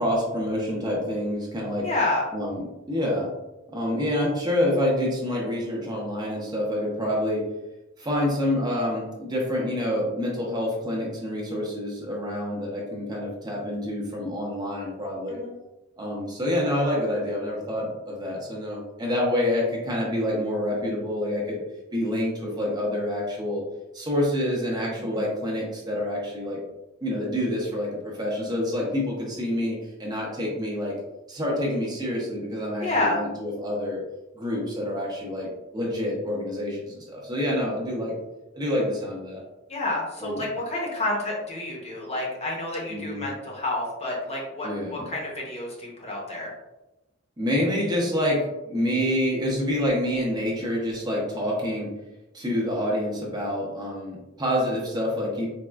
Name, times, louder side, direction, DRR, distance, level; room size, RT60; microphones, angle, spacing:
voice 1, 0.0-1.9 2.3-2.6 2.9-3.3 3.7-7.4 8.0-15.4 16.0-21.6 21.9-23.6 23.9-26.6 27.0-30.9 31.3-34.0 34.3-35.5 35.7-38.1 38.5-39.4 40.2-40.4 42.9-43.3 44.6-45.1 47.4-51.9 52.3-55.5, left 1 dB, 20° right, -3 dB, 0.6 m, -27 dB
voice 2, 1.8-2.2 15.3-15.5 25.0-25.3 32.8-33.2 39.7-46.5, left 2 dB, 30° left, -3 dB, 0.8 m, -29 dB
4.1 x 2.3 x 2.3 m, 0.99 s
head